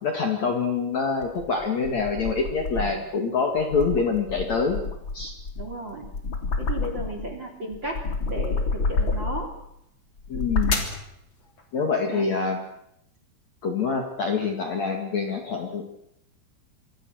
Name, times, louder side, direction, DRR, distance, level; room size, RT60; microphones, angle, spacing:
voice 1, 0.0-4.8 5.1-5.3 10.3-10.8 11.7-12.6 13.6-15.8, left 5 dB, 45° left, 3 dB, 2.9 m, -25 dB
sound 1, 1.2-3.1 3.6-7.3 7.7-9.6 10.2-11.0, left 3 dB, 30° left, 3.4 m, -29 dB
voice 2, 5.6-6.1 6.6-9.5 12.1-12.3, right 1 dB, 30° right, 5 dB, 3.1 m, -34 dB
26.5 x 24.5 x 6.5 m, 0.78 s
omnidirectional pair, 5.4 m